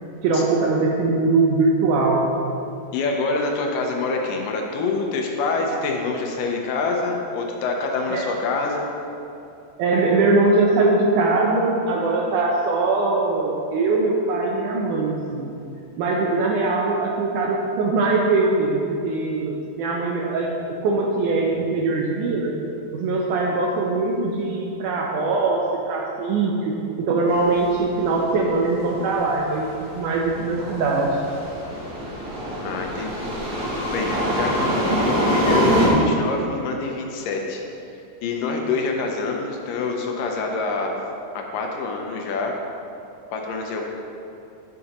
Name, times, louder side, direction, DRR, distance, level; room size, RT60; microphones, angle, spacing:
voice 1, 0.2-2.6 8.1-8.3 9.8-15.5 16.0-22.5 22.9-29.7 29.9-31.2, right 3 dB, 75° right, -1 dB, 1.9 m, -21 dB
voice 2, 2.9-8.9 32.6-33.3 33.9-37.6 38.2-40.9 41.3-42.6 43.3-43.8, left 3 dB, 75° left, 1 dB, 2.2 m, -26 dB
sound 1, 27.4-35.9, equal, 55° right, 3.0 m, -25 dB
10.5 x 7.5 x 2.9 m, 2.7 s
omnidirectional pair, 4.1 m